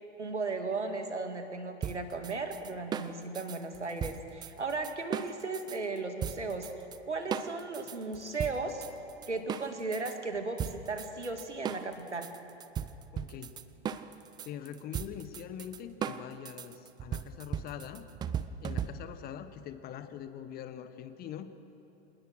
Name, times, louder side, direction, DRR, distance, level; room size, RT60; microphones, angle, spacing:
voice 1, 0.2-6.7 7.0-8.9 9.3-12.3, right 3 dB, 80° right, 6 dB, 2.1 m, -36 dB
sound 1, 1.8-5.8 6.2-7.0 7.3-10.2 10.6-19.3, right 8 dB, 15° right, 0.4 m, -38 dB
voice 2, 13.1-13.6 14.4-18.1 18.6-21.5, left 9 dB, 25° left, 11 dB, 1.1 m, -43 dB
26.5 x 19.0 x 6.3 m, 2.9 s
figure-of-eight pair, 95°, 34 cm